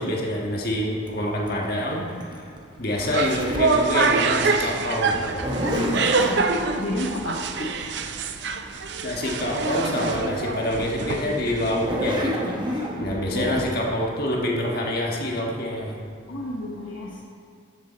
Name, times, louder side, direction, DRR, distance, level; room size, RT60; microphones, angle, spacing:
voice 1, 0.0-2.5 2.8-5.3 7.0-7.2 7.6-7.8 9.0-16.0, left 1 dB, 50° left, -2 dB, 1.5 m, -27 dB
Zipper (clothing), 1.1-3.8 5.1-6.4 9.0-9.1 9.3-10.3 10.8-10.9 11.6-13.6, equal, 25° right, 1.1 m, -30 dB
sound 1, 3.0-12.0, right 4 dB, 60° right, 0.6 m, -26 dB
voice 2, 5.7-7.4 13.3-13.5 16.3-17.2, left 1 dB, 85° left, -3 dB, 1.1 m, -30 dB
13.0 x 7.8 x 4.3 m, 2.2 s
head